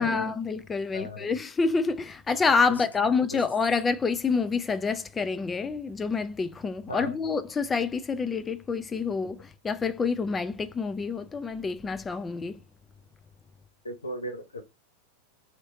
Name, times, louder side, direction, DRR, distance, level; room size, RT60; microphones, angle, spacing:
voice 1, 0.0-12.6, left 4 dB, 20° left, 0.5 m, -27 dB
voice 2, 0.9-1.3 3.3-3.4 6.9-7.2 13.8-14.6, left 1 dB, 85° left, 0.8 m, -36 dB
3.1 x 2.9 x 4.0 m
figure-of-eight pair, 90°, 0 cm